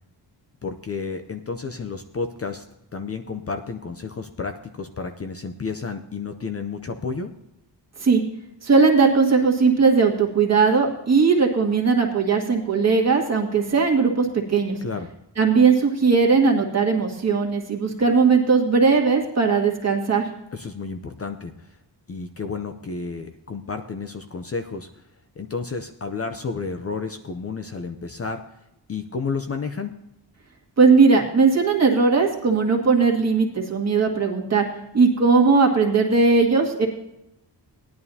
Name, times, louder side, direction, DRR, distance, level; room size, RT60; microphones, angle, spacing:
voice 1, 0.6-2.6 2.9-7.3 14.8-15.1 20.5-21.8 22.1-25.0 25.4-28.4 28.9-29.9, left 4 dB, 35° left, 7 dB, 0.6 m, -31 dB
voice 2, 8.6-14.8 15.4-20.2 30.8-34.6 34.9-36.9, right 4 dB, 35° right, 0 dB, 1.9 m, -18 dB
18.0 x 11.0 x 2.8 m, 0.86 s
wide cardioid pair, 175°, 43 cm